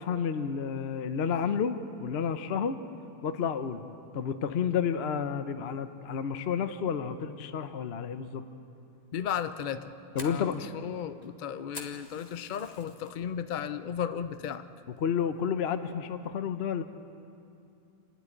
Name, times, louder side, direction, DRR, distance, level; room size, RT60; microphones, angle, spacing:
voice 1, 0.0-2.8 3.2-3.8 4.1-8.4 10.1-10.6 15.0-16.8, left 7 dB, 50° left, 10 dB, 0.9 m, -30 dB
voice 2, 9.1-9.9 10.2-14.7, left 8 dB, 90° left, 11 dB, 0.4 m, -35 dB
Fire, 9.6-13.1 13.5-13.9 14.3-14.4 15.0-15.3, left 2 dB, 25° left, 1.6 m, -47 dB
27.5 x 12.5 x 9.9 m, 2.7 s
omnidirectional pair, 1.8 m